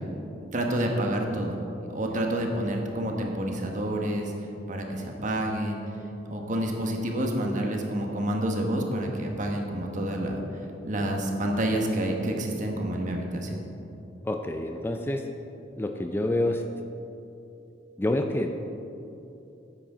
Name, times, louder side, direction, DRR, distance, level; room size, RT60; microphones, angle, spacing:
voice 1, 0.5-1.6 1.9-4.3 4.7-5.8 6.3-10.4 10.8-13.6, right 1 dB, 45° right, 1 dB, 1.2 m, -28 dB
voice 2, 14.2-15.3 15.8-16.6 18.0-18.7, left 1 dB, 10° left, 4 dB, 0.4 m, -27 dB
9.0 x 8.7 x 5.0 m, 2.8 s
head